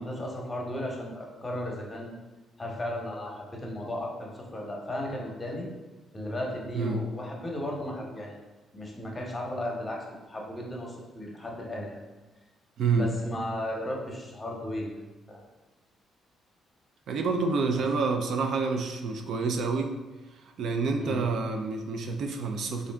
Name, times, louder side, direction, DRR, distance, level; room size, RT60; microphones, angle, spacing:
voice 1, 0.0-2.2 2.6-5.7 6.1-8.4 8.7-12.0 12.9-14.9 15.3-15.4 21.0-21.3, left 1 dB, 20° left, -1 dB, 0.9 m, -35 dB
voice 2, 12.8-13.1 17.1-19.9 20.3-22.9, right 4 dB, 70° right, 4 dB, 0.4 m, -28 dB
3.7 x 2.6 x 3.3 m, 1.1 s
cardioid pair, 90°, 0 cm